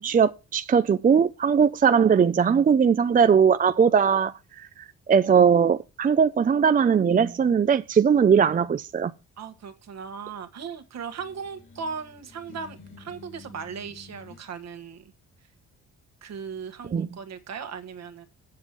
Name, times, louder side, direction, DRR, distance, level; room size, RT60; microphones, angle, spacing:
voice 1, 0.0-4.7 5.1-9.1 16.9-17.1, right 7 dB, 30° right, 0.5 m, -20 dB
voice 2, 9.4-15.1 16.2-18.3, right 6 dB, 60° right, 1.6 m, -38 dB
sound 1, 11.2-14.5, left 4 dB, 40° left, 1.9 m, -49 dB
7.6 x 7.2 x 6.1 m
cardioid pair, 90°, 30 cm